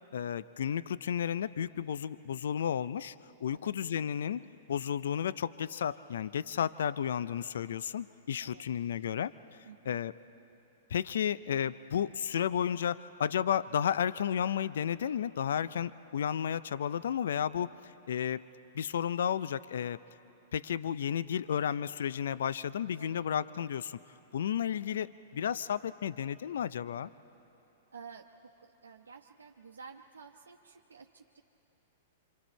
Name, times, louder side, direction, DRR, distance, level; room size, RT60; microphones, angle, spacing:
voice 1, 0.1-3.1 3.4-9.3 9.9-10.1 10.9-18.5 18.7-20.0 20.5-24.0 24.3-27.1, left 9 dB, 70° left, 16 dB, 0.5 m, -32 dB
voice 2, 9.7-10.0 23.0-23.2 24.6-24.8 27.9-31.4, right 5 dB, 85° right, 0 dB, 0.9 m, -52 dB
27.5 x 26.5 x 4.5 m, 2.9 s
hypercardioid pair, 110°, 0 cm